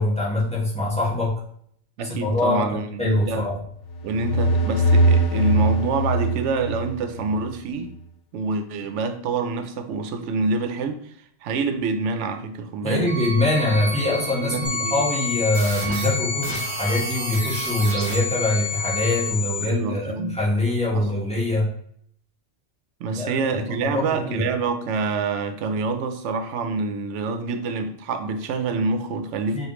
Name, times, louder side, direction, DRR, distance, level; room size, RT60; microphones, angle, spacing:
voice 1, 0.0-1.3 2.0-3.6 12.8-21.7 23.2-24.4 29.5-29.7, left 2 dB, 5° left, 1.1 m, -24 dB
voice 2, 2.0-3.5 4.0-7.9 8.3-11.1 11.4-13.1 14.4-15.0 19.6-20.3 20.9-21.1 23.0-29.7, right 4 dB, 85° right, 0.9 m, -26 dB
sound 1, 3.9-7.5, right 1 dB, 75° left, 0.9 m, -21 dB
sound 2, 13.1-19.3, right 1 dB, 35° right, 0.5 m, -32 dB
sound 3, 14.6-19.7, left 4 dB, 25° left, 1.4 m, -30 dB
4.9 x 2.5 x 3.0 m
omnidirectional pair, 1.2 m